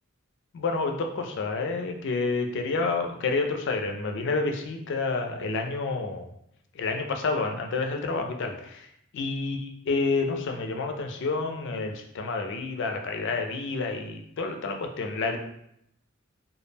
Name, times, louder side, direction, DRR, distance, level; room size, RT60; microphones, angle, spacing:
voice 1, 0.5-6.2 6.8-8.9 9.1-15.4, left 3 dB, 60° left, 4 dB, 0.4 m, -29 dB
2.2 x 2.0 x 3.2 m, 0.76 s
head